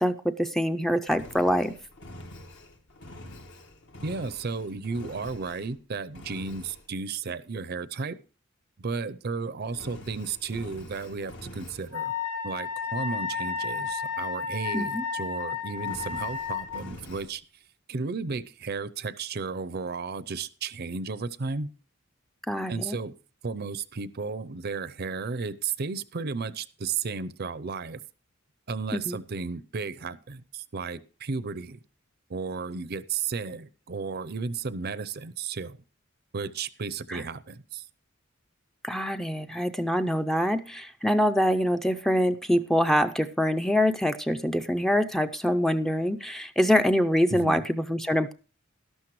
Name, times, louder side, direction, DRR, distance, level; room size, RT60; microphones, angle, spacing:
voice 1, 0.0-1.7 14.7-15.0 22.5-23.0 28.9-29.2 37.1-37.2 38.8-48.3, equal, ahead, 9 dB, 0.5 m, -25 dB
Engine, 1.1-5.8 6.1-6.9 9.7-11.9 15.7-17.3, left 1 dB, 60° left, 1.5 m, -46 dB
voice 2, 4.0-8.2 8.8-12.1 12.4-17.4 17.9-21.7 22.7-23.1 23.4-28.0 28.7-31.8 32.3-35.8 36.3-37.8 47.3-47.6, right 4 dB, 50° right, 16 dB, 0.6 m, -33 dB
Wind instrument woodwind instrument, 11.9-16.8, left 6 dB, 80° left, 3.9 m, -32 dB
12.5 x 12.0 x 3.1 m, 0.35 s
head